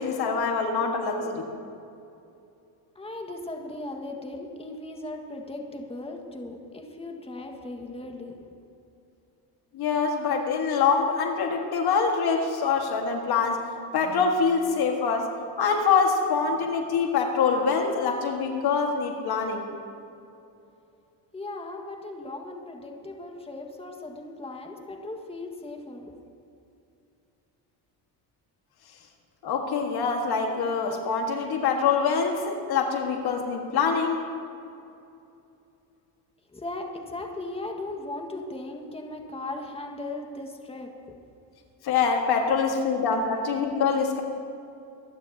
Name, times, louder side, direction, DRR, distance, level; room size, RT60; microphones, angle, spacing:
voice 1, 0.0-1.5 9.7-13.7 13.9-15.3 15.6-19.7 29.4-34.2 41.8-44.2, left 5 dB, 65° left, 3 dB, 1.7 m, -25 dB
voice 2, 2.9-8.7 21.3-26.1 36.5-40.9, left 2 dB, 15° left, 2 dB, 1.7 m, -37 dB
23.0 x 12.0 x 2.9 m, 2.6 s
supercardioid pair, 85°, 42 cm